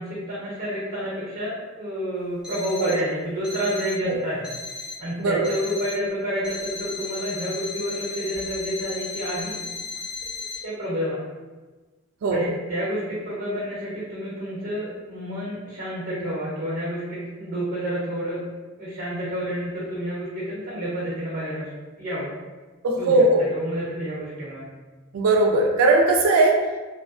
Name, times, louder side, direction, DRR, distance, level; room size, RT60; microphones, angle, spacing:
voice 1, 0.0-4.5 5.0-9.6 10.6-11.3 12.3-18.4 18.8-21.7 22.0-22.3 23.0-23.1 23.5-24.7, equal, 50° right, -8 dB, 0.8 m, -29 dB
Alarm, 2.4-3.0 3.4-4.0 4.4-5.0 5.4-6.0 6.4-10.6, left 3 dB, 5° right, 0.6 m, -35 dB
voice 2, 5.2-5.5 12.2-12.4 22.8-23.4 25.1-26.6, right 2 dB, 85° right, 2 dB, 0.3 m, -19 dB
2.7 x 2.1 x 2.5 m, 1.2 s
head